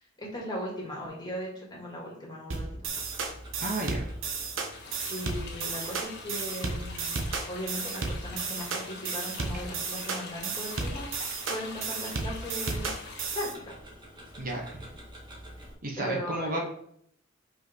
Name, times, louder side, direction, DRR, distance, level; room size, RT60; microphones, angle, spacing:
voice 1, 0.2-2.6 3.0-3.2 5.1-7.1 7.5-12.9 13.3-13.7 16.0-16.6, equal, 20° left, -3 dB, 2.3 m, -38 dB
sound 1, 2.5-13.5, right 4 dB, 70° right, 1.1 m, -33 dB
Tick-tock, 2.9-15.7, equal, 25° right, 1.7 m, -49 dB
voice 2, 3.6-4.1 14.4-14.8 15.8-16.6, right 1 dB, 45° right, 1 dB, 1.2 m, -32 dB
sound 2, 4.7-13.5, left 4 dB, 60° left, 1.5 m, -45 dB
5.3 x 5.1 x 4.6 m, 0.66 s
head